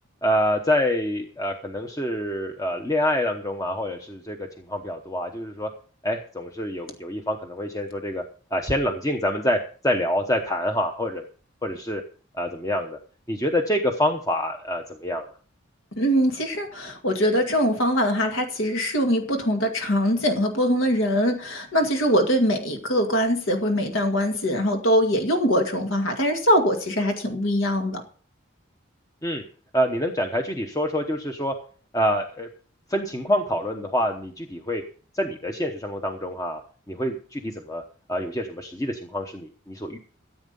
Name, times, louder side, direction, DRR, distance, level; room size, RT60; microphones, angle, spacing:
voice 1, 0.2-5.7 6.0-8.2 8.5-11.2 11.6-12.0 12.3-13.0 13.3-15.3 29.2-29.4 29.7-31.5 31.9-32.5 32.9-34.8 35.1-36.6 36.9-37.8 38.1-40.0, equal, 15° left, 4 dB, 0.9 m, -26 dB
voice 2, 16.0-28.0, equal, 70° left, 4 dB, 2.1 m, -22 dB
14.5 x 8.5 x 5.4 m, 0.42 s
head